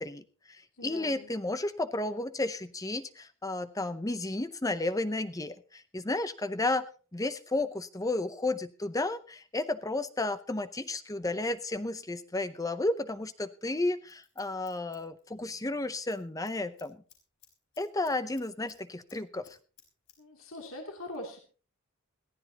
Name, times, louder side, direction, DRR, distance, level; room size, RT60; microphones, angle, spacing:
voice 1, 0.0-6.9 7.1-17.0 17.8-19.6, left 2 dB, 15° left, 12 dB, 0.7 m, -32 dB
voice 2, 0.8-1.3 20.2-21.4, left 1 dB, 70° left, 2 dB, 2.8 m, -42 dB
Scissors, 13.8-15.7 16.0-16.2 16.5-18.8 19.1-20.2 20.4-20.5, left 9 dB, 85° left, 5.1 m, -60 dB
21.5 x 15.5 x 2.9 m, 0.37 s
head